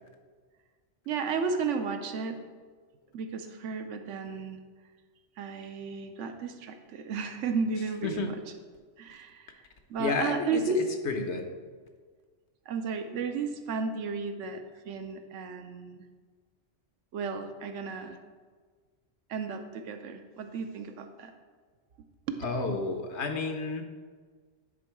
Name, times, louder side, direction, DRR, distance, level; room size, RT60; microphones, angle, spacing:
voice 1, 1.1-2.4 3.1-4.6 5.4-8.5 9.0-9.6 9.9-10.9 12.7-16.0 17.1-18.2 19.3-21.3 22.3-22.4, right 4 dB, 75° right, 7 dB, 1.0 m, -33 dB
voice 2, 10.0-10.6 11.1-11.4 22.4-23.8, left 3 dB, 65° left, 5 dB, 1.0 m, -30 dB
9.9 x 3.7 x 4.6 m, 1.5 s
omnidirectional pair, 1.3 m